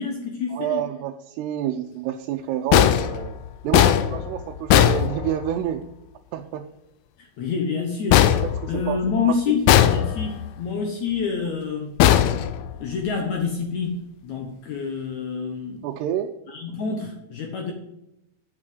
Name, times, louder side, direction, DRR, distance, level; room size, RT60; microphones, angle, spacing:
voice 1, 0.0-0.9 7.4-8.4 8.7-11.9 12.7-15.8 16.5-17.7, left 5 dB, 65° left, 2 dB, 1.9 m, -27 dB
voice 2, 0.5-3.4 3.6-5.8 6.3-6.6 8.6-9.0 9.5-9.6 15.8-16.3, right 11 dB, 85° right, 3 dB, 2.7 m, -28 dB
sound 1, 2.7-5.8 8.1-9.2 9.7-10.5 12.0-13.1, left 11 dB, 85° left, 2.0 m, -19 dB
8.4 x 6.1 x 7.8 m, 0.86 s
omnidirectional pair, 4.6 m